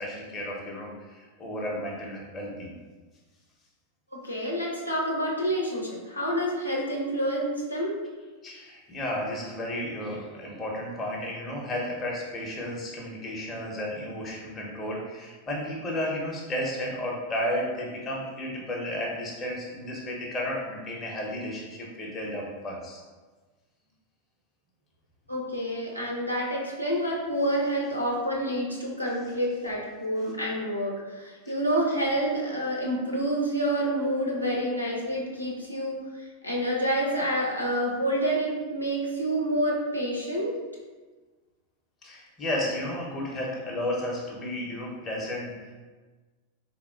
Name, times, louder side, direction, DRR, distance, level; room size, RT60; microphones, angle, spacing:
voice 1, 0.0-2.7 8.4-23.0 31.5-31.6 42.0-45.7, left 1 dB, 20° left, -2 dB, 0.7 m, -33 dB
voice 2, 4.2-8.0 25.3-40.5, right 1 dB, 85° left, -3 dB, 0.6 m, -28 dB
3.6 x 2.7 x 2.3 m, 1.3 s
figure-of-eight pair, 90°, 0 cm